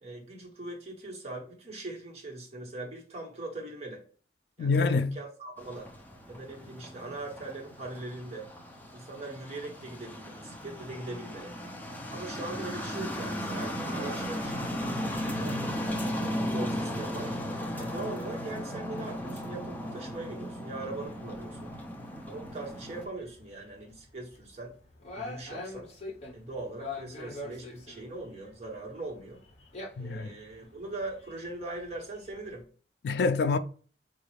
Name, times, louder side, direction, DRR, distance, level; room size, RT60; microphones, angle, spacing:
voice 1, 0.0-4.0 4.6-5.9 6.3-8.5 8.9-11.5 12.1-15.6 16.1-17.3 17.8-21.7 22.3-24.7 25.1-25.9 26.3-29.4 30.0-32.7, right 2 dB, 40° right, 1.2 m, -41 dB
voice 2, 4.6-5.2 30.0-30.3 33.0-33.6, left 4 dB, 65° left, 0.3 m, -26 dB
sound 1, 5.6-23.1, equal, 10° left, 0.5 m, -36 dB
sound 2, 22.7-32.6, left 2 dB, 40° left, 0.9 m, -45 dB
3.9 x 2.4 x 3.1 m
head